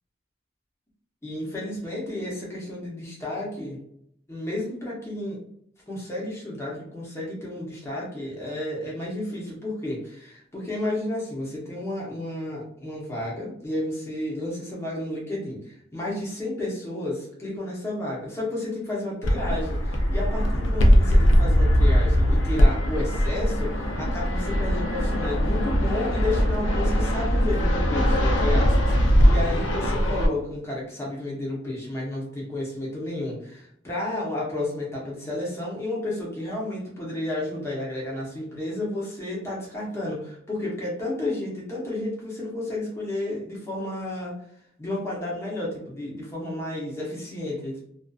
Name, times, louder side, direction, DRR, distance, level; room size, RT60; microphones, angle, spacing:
voice 1, 1.2-3.8 4.3-5.4 5.9-44.4 44.8-47.8, left 1 dB, 15° left, -5 dB, 0.8 m, -32 dB
Fixed-wing aircraft airplane, 19.2-30.3, equal, 70° left, 0.5 m, -21 dB
2.5 x 2.4 x 2.3 m, 0.69 s
head